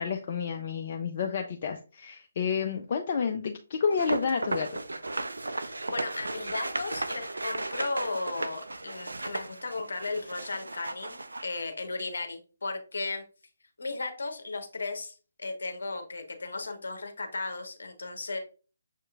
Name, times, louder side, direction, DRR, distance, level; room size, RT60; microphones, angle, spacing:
voice 1, 0.0-4.7, left 6 dB, 40° left, 3 dB, 0.4 m, -30 dB
sound 1, 3.9-11.4, right 2 dB, 75° right, 0.4 m, -35 dB
voice 2, 5.5-13.2 13.8-18.4, left 3 dB, 65° left, 6 dB, 0.9 m, -35 dB
6.4 x 2.9 x 2.3 m, 0.36 s
figure-of-eight pair, 140°, 0 cm